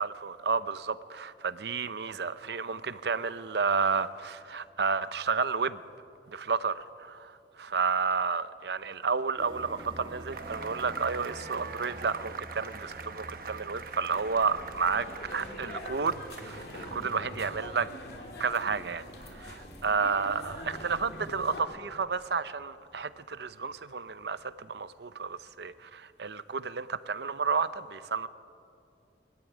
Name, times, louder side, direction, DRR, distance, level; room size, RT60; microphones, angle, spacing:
voice 1, 0.0-5.8 6.3-17.9 18.4-28.3, right 5 dB, 75° right, 0.7 m, -31 dB
sound 1, 9.4-25.9, right 1 dB, 25° right, 2.0 m, -51 dB
Cheering / Applause / Crowd, 10.3-17.6, right 4 dB, 50° right, 1.0 m, -45 dB
sound 2, 14.1-21.6, left 1 dB, 65° left, 2.9 m, -44 dB
22.5 x 14.0 x 9.2 m
head